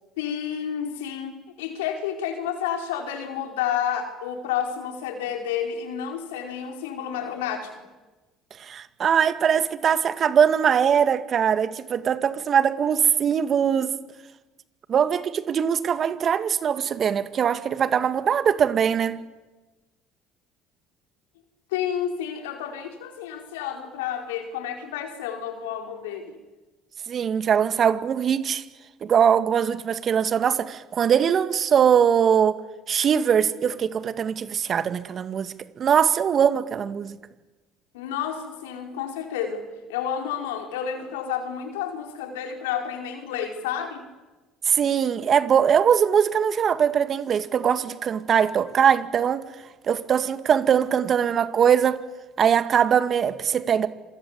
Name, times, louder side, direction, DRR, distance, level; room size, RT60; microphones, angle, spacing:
voice 1, 0.2-7.7 21.7-26.4 37.9-39.6 39.9-44.0, left 8 dB, 85° left, 4.7 m, -30 dB
voice 2, 8.6-13.9 14.9-19.2 27.1-28.6 29.0-32.6 32.9-37.2 44.7-49.5 49.8-52.0 52.4-53.9, right 8 dB, 45° right, 2.1 m, -21 dB
27.0 x 26.5 x 8.3 m
hypercardioid pair, 70°, 0 cm